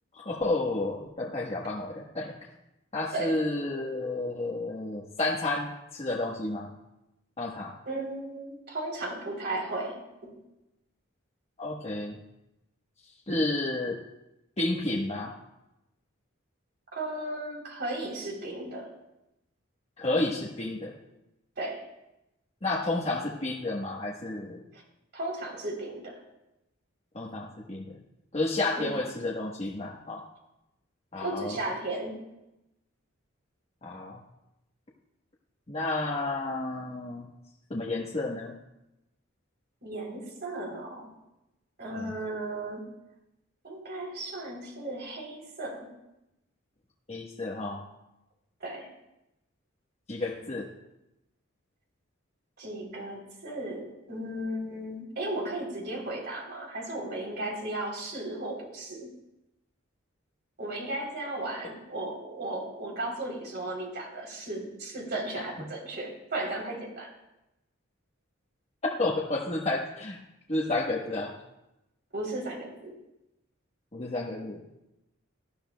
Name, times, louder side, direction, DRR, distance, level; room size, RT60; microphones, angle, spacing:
voice 1, 0.2-2.3 2.9-6.7 7.4-7.7 11.6-12.2 13.3-14.0 14.6-15.3 20.0-20.9 22.6-24.6 27.1-27.9 28.3-30.2 31.1-31.6 33.8-34.2 35.7-37.3 37.7-38.5 41.9-42.1 47.1-47.8 50.1-50.7 68.8-70.2 70.5-71.3 73.9-74.6, left 2 dB, 30° left, -4 dB, 1.2 m, -31 dB
voice 2, 7.9-10.0 10.2-10.3 16.9-18.9 21.6-21.8 24.7-24.8 25.1-26.2 28.8-28.9 31.2-32.1 39.8-41.1 41.8-42.8 43.6-45.9 48.6-48.9 52.6-59.1 60.6-67.1 72.1-72.9, right 2 dB, 55° right, -1 dB, 3.5 m, -35 dB
18.5 x 12.5 x 2.3 m, 0.92 s
head